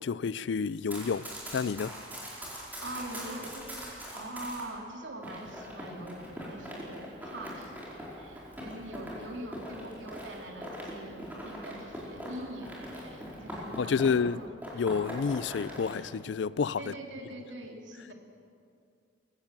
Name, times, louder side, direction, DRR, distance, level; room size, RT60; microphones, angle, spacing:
voice 1, 0.0-2.0 13.8-14.4 14.7-16.9, left 5 dB, 70° left, 0.4 m, -29 dB
Run, 0.7-4.7 5.2-14.3 14.6-16.0, equal, 10° right, 4.5 m, -42 dB
voice 2, 2.8-3.9 4.1-7.8 8.1-14.0 14.3-14.6 16.8-18.1, right 1 dB, 85° right, 2.8 m, -43 dB
22.5 x 16.0 x 7.5 m
head